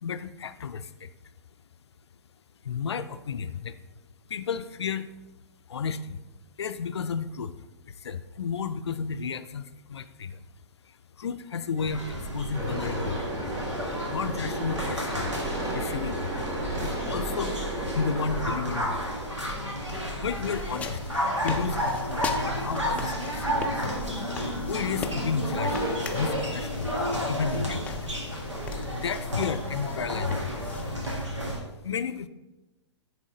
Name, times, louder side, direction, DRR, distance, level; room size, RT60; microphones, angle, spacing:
voice 1, 0.0-1.1 2.6-3.8 4.3-5.1 5.7-6.2 6.6-7.6 7.9-10.4 11.2-13.3 14.1-16.3 16.8-17.5 17.9-19.0 20.2-21.1 21.4-23.8 24.7-25.8 26.1-28.0 28.9-30.5 31.8-32.3, left 6 dB, 65° left, 12 dB, 0.4 m, -32 dB
sound 1, 11.8-31.6, equal, 90° right, 1.7 m, -32 dB
sound 2, 12.5-27.3, right 1 dB, 20° right, 1.3 m, -37 dB
sound 3, 20.3-31.3, left 4 dB, 10° left, 0.4 m, -41 dB
9.9 x 3.6 x 3.8 m, 1.1 s
figure-of-eight pair, 120°, 15 cm